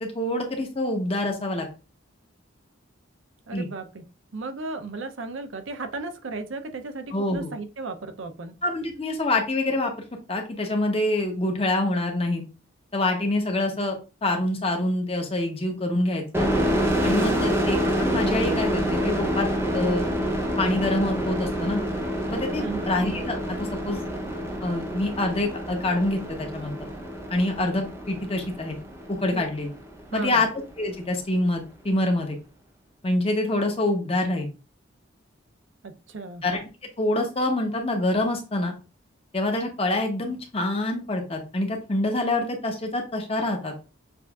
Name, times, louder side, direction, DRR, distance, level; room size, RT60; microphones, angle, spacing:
voice 1, 0.0-1.7 3.5-3.7 7.1-7.5 8.6-9.9 10.3-12.4 12.9-16.5 17.0-19.5 19.7-20.3 20.6-21.8 22.3-24.0 24.6-26.8 27.3-28.8 29.1-29.7 30.1-30.5 30.8-32.4 33.0-34.5 36.4-36.6 37.0-38.8 39.3-43.7, left 1 dB, 30° left, 2 dB, 0.8 m, -26 dB
voice 2, 3.5-4.0 4.3-8.6 17.0-17.5 22.6-22.9 29.3-29.5 30.1-30.5 35.8-36.4, right 3 dB, 70° right, 7 dB, 0.6 m, -35 dB
sound 1, 16.3-29.8, equal, 10° right, 0.6 m, -27 dB
6.7 x 2.5 x 2.3 m, 0.33 s
head